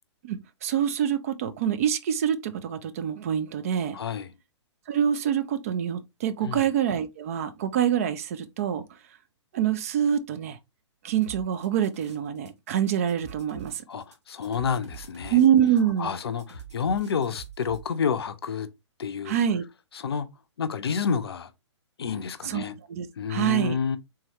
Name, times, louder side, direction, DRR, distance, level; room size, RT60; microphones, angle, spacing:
voice 1, 0.2-4.0 4.9-8.8 9.5-10.6 11.0-13.8 15.3-16.1 19.3-19.6 22.4-23.7, right 9 dB, 30° right, 0.3 m, -25 dB
voice 2, 3.9-4.3 6.4-6.7 13.9-15.4 16.0-18.7 19.0-19.3 19.9-20.3 20.6-21.5 22.0-22.7 23.2-24.0, left 6 dB, 55° left, 0.5 m, -29 dB
sound 1, 11.2-12.5 12.8-17.8, right 4 dB, 65° right, 1.2 m, -44 dB
3.8 x 2.7 x 2.8 m
figure-of-eight pair, 120°, 15 cm